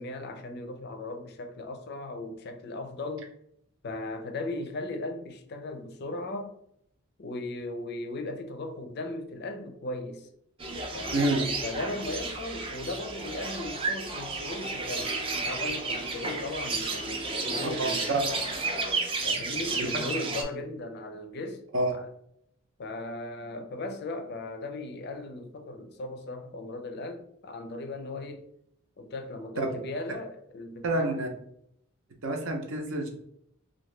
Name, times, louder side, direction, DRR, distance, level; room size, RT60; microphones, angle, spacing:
voice 1, 0.0-3.3 3.8-6.6 7.2-10.3 10.9-18.4 19.2-21.6 21.9-22.1 22.8-28.5 29.0-31.2, left 2 dB, 50° left, 0.4 m, -37 dB
sound 1, 10.6-20.4, right 3 dB, 25° right, 0.4 m, -32 dB
voice 2, 11.1-11.4 17.8-18.2 21.7-21.9 29.6-29.7 30.8-31.3 32.2-33.1, right 2 dB, 65° right, 0.6 m, -27 dB
2.9 x 2.6 x 3.2 m
head